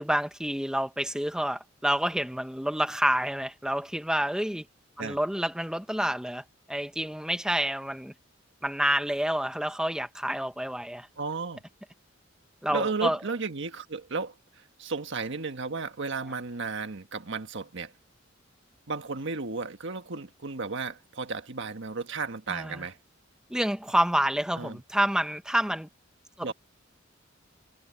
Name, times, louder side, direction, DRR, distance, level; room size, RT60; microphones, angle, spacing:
voice 1, 0.0-4.6 5.0-8.1 8.6-11.1 12.6-13.2 22.5-22.8 23.5-25.9 26.4-26.5, right 1 dB, 5° right, 1.0 m, -28 dB
voice 2, 11.2-11.6 12.7-17.9 18.9-23.0 24.6-24.8 26.4-26.5, right 4 dB, 65° right, 1.5 m, -34 dB
head